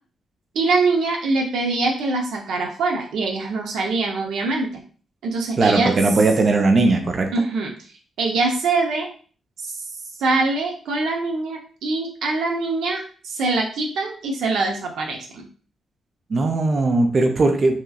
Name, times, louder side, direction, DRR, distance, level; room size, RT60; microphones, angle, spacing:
voice 1, 0.5-4.8 5.2-5.9 7.3-7.7 8.2-9.1 9.6-9.7 10.2-15.5, right 3 dB, 85° right, 1 dB, 0.6 m, -23 dB
voice 2, 5.6-7.3 16.3-17.7, right 3 dB, 40° right, 4 dB, 0.4 m, -18 dB
2.8 x 2.4 x 2.3 m, 0.41 s
cardioid pair, 135°, 0 cm